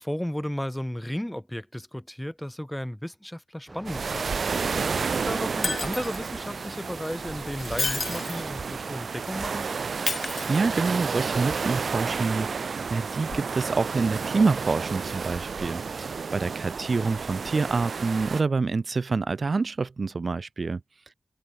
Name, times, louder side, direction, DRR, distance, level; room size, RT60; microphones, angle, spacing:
voice 1, 0.0-4.7 5.0-9.8, equal, 5° left, 2.3 m, -34 dB
sound 1, 3.7-8.7, right 2 dB, 25° right, 6.2 m, -43 dB
sound 2, 3.8-18.4, right 5 dB, 75° right, 3.3 m, -31 dB
Shatter, 5.6-6.3 7.5-8.5 10.1-11.0 13.3-13.4, left 4 dB, 55° left, 1.3 m, -31 dB
voice 2, 10.5-20.8, right 4 dB, 55° right, 4.5 m, -27 dB
wide cardioid pair, 85°, 0 cm